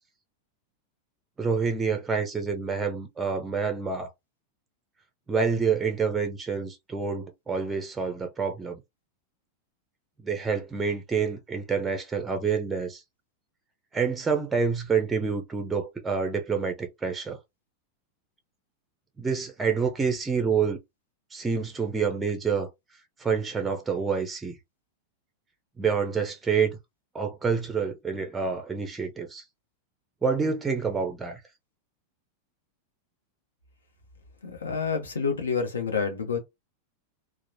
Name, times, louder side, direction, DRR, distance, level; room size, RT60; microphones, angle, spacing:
voice 1, 1.4-4.1 5.3-8.8 10.2-13.0 13.9-17.4 19.2-20.8 21.3-22.7 23.2-24.5 25.8-26.8 27.1-29.4 30.2-31.4, right 5 dB, 15° right, 0.5 m, -27 dB
voice 2, 34.4-36.4, left 5 dB, 70° left, 0.8 m, -28 dB
2.9 x 2.1 x 2.6 m
figure-of-eight pair, 90°, 0 cm